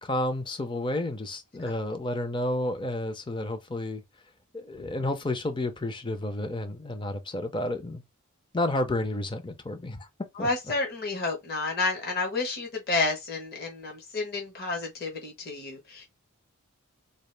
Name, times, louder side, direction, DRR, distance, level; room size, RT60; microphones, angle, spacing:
voice 1, 0.0-4.0 4.5-8.0 8.5-10.1 10.4-10.5, left 1 dB, 20° left, 0.5 m, -31 dB
voice 2, 10.4-16.1, left 3 dB, 45° left, 1.1 m, -30 dB
4.0 x 2.4 x 3.3 m
head